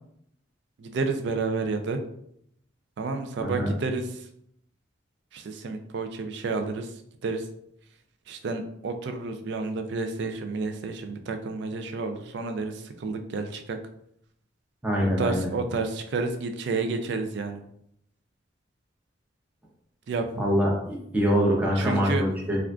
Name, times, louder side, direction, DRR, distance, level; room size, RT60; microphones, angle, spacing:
voice 1, 0.8-2.0 3.0-4.2 5.3-6.9 7.2-7.5 8.3-13.8 15.0-17.6 20.1-20.5 21.8-22.2, right 3 dB, 60° right, 7 dB, 0.3 m, -30 dB
voice 2, 3.4-3.7 14.8-15.5 20.4-22.6, equal, 10° right, -4 dB, 0.5 m, -24 dB
3.5 x 2.4 x 2.2 m, 0.72 s
head